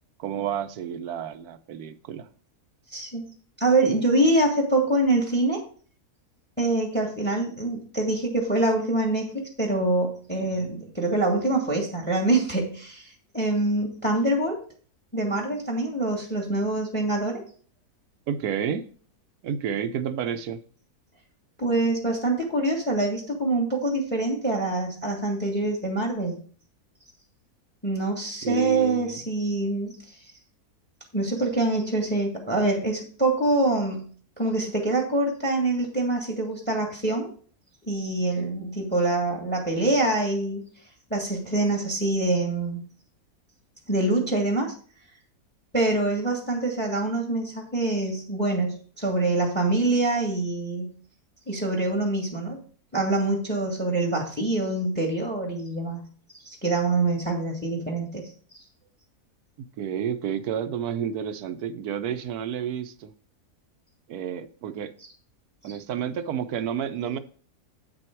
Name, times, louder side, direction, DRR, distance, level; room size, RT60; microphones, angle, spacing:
voice 1, 0.2-2.3 10.4-10.6 18.3-18.9 19.4-20.6 28.4-29.2 59.8-63.1 64.1-64.9 65.6-67.2, right 8 dB, 80° right, 1.2 m, -30 dB
voice 2, 2.9-3.2 3.6-5.6 6.6-14.6 15.1-17.4 21.6-26.4 27.8-29.9 31.1-34.1 34.4-37.3 37.9-40.6 41.1-42.8 43.9-44.7 45.7-50.9 51.5-52.6 52.9-56.0 56.4-58.3, right 2 dB, 5° left, 1.9 m, -25 dB
8.4 x 6.2 x 4.5 m
omnidirectional pair, 1.6 m